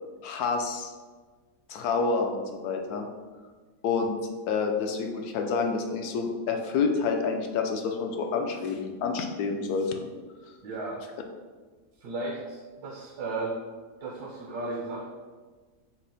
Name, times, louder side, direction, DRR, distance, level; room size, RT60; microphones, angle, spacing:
voice 1, 0.2-0.9 1.7-3.1 3.8-4.1 4.5-10.1, left 4 dB, 75° left, 4 dB, 1.1 m, -28 dB
voice 2, 10.6-11.0 12.0-13.6 14.0-15.1, right 2 dB, 75° right, -1 dB, 1.1 m, -34 dB
6.0 x 2.1 x 4.0 m, 1.4 s
omnidirectional pair, 1.8 m